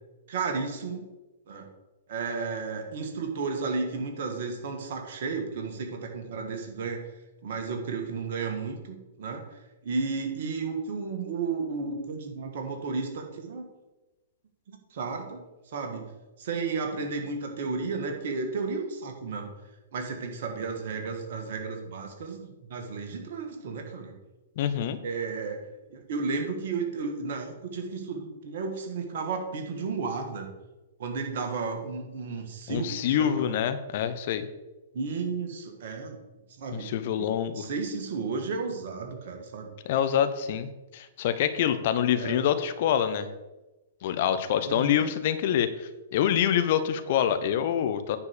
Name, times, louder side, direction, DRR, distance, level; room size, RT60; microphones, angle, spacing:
voice 1, 0.3-1.0 1.5-1.7 2.1-7.0 7.4-9.4 9.8-13.7 14.7-15.4 15.7-16.1 16.4-19.5 19.9-24.1 25.0-25.6 25.9-30.5 31.0-33.5 34.9-36.2 36.6-36.9 37.2-37.3 37.6-39.7 42.2-42.5 44.7-45.1, right 4 dB, 55° right, 3 dB, 2.1 m, -33 dB
voice 2, 24.6-25.0 32.7-34.5 36.7-37.6 39.8-43.3 44.0-48.2, left 9 dB, 50° left, 10 dB, 0.9 m, -26 dB
9.8 x 4.8 x 6.8 m, 1.1 s
figure-of-eight pair, 110°, 0 cm